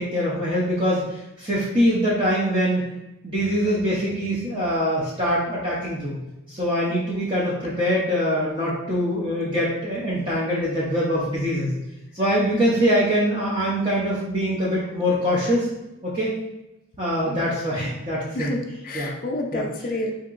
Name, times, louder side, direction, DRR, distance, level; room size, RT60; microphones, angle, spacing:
voice 1, 0.0-2.8 3.2-6.2 6.5-11.7 12.1-15.7 16.0-16.3 17.0-18.6 18.9-19.1 19.5-19.6, equal, 25° right, -8 dB, 0.6 m, -23 dB
voice 2, 18.3-20.1, left 2 dB, 40° left, 2 dB, 0.4 m, -29 dB
3.7 x 2.8 x 2.4 m, 0.95 s
head